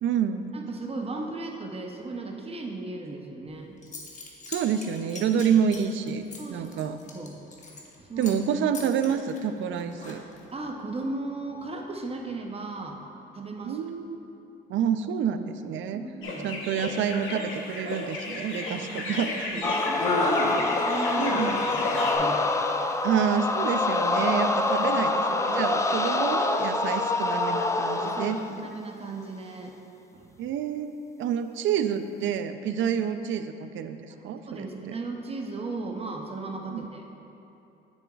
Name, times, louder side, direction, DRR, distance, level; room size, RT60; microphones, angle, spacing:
voice 1, 0.0-0.5 4.5-7.0 8.2-10.2 13.6-14.2 14.7-16.0 16.4-19.5 21.2-21.6 23.0-28.4 30.4-34.7 36.7-36.8, right 8 dB, 75° right, 10 dB, 0.4 m, -28 dB
voice 2, 0.5-3.8 6.4-6.7 7.1-7.4 8.0-8.4 10.5-13.0 13.3-13.8 15.9-16.5 18.8-19.1 19.5-22.4 24.8-24.9 28.0-29.7 30.1-30.4 34.1-37.0, right 3 dB, 30° right, 2 dB, 0.7 m, -36 dB
Zipper (clothing) / Coin (dropping), 3.5-3.6 3.8-7.9 8.2-8.5 8.7-10.5, left 3 dB, 40° left, 1.2 m, -43 dB
sound 1, 16.2-22.2, left 2 dB, 80° left, 1.0 m, -31 dB
sound 2, 19.6-28.5, left 2 dB, 15° left, 0.3 m, -26 dB
9.0 x 7.1 x 2.4 m, 3.0 s
cardioid pair, 90°, 20 cm